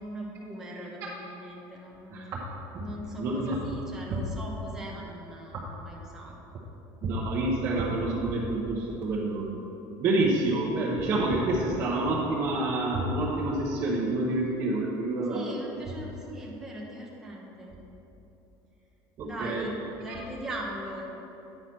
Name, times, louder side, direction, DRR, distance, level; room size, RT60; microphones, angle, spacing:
voice 1, 0.0-2.1 2.8-6.3 15.3-17.8 19.2-21.0, right 1 dB, 5° right, -4 dB, 0.9 m, -40 dB
voice 2, 3.2-3.6 7.0-9.5 10.0-15.5 19.2-19.7 20.1-20.2, right 2 dB, 30° right, -7 dB, 1.0 m, -28 dB
9.0 x 4.9 x 6.0 m, 3.0 s
cardioid pair, 180°, 9 cm